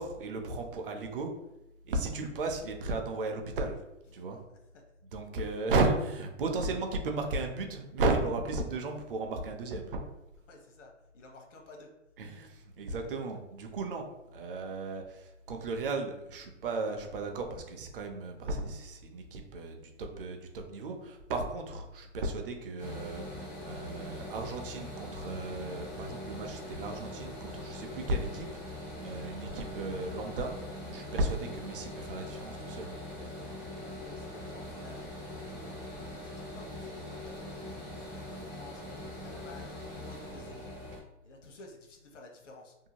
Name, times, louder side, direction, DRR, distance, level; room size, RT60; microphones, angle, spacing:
voice 1, 0.0-1.3 1.8-3.8 4.1-4.4 5.1-10.0 12.2-14.0 14.3-28.8 29.0-30.5 30.9-32.9, right 2 dB, 45° right, 4 dB, 0.5 m, -34 dB
voice 2, 4.1-4.8 5.4-5.5 10.5-11.9 33.5-35.8 36.2-38.8 39.2-40.7 41.2-42.7, left 2 dB, 70° left, 2 dB, 0.9 m, -53 dB
sound 1, 22.8-41.0, left 1 dB, 10° left, 0.4 m, -42 dB
2.7 x 2.1 x 2.8 m, 0.89 s
hypercardioid pair, 155°, 37 cm